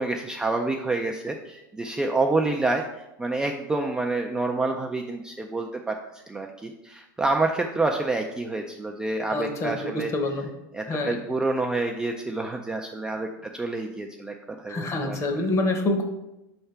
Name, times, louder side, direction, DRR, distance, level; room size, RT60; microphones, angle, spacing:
voice 1, 0.0-2.8 3.2-6.0 6.3-10.1 10.7-14.3 14.6-15.2, right 2 dB, 5° right, 2 dB, 0.3 m, -28 dB
voice 2, 9.3-10.5 10.9-11.2 14.7-16.0, left 2 dB, 25° left, 5 dB, 0.9 m, -26 dB
5.6 x 3.3 x 5.6 m, 0.93 s
supercardioid pair, 140°, 11 cm